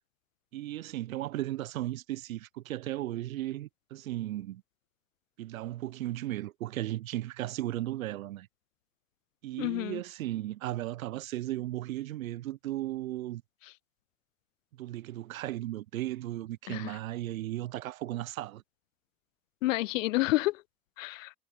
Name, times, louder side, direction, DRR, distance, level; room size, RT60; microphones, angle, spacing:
voice 1, 0.5-4.6 5.4-8.5 9.4-13.4 14.7-18.6, right 15 dB, 65° right, 1.1 m, -36 dB
voice 2, 9.6-10.0 16.7-16.9 19.6-20.6 21.0-21.3, left 18 dB, 60° left, 0.7 m, -29 dB
figure-of-eight pair, 80°, 43 cm